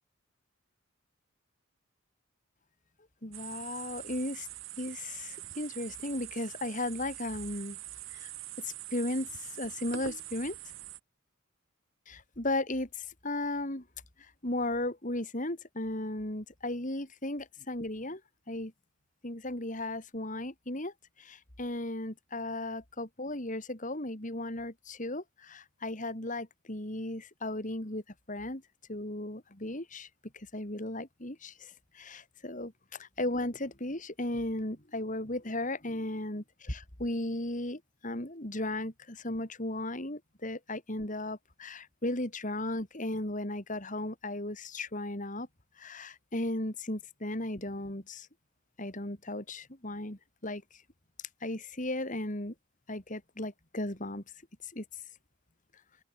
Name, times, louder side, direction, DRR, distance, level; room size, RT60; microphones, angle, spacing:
voice 1, 3.2-4.5 4.8-7.8 8.1-8.3 8.6-10.6 12.1-13.8 14.2-18.2 18.5-18.7 19.2-20.9 21.2-28.6 28.9-30.1 30.3-45.5 45.8-48.3 48.8-50.6 51.4-52.5 52.9-54.2 54.6-54.8, left 1 dB, 35° left, 3.4 m, -36 dB
sound 1, 3.3-11.0, right 12 dB, 70° right, 6.9 m, -44 dB
open air
head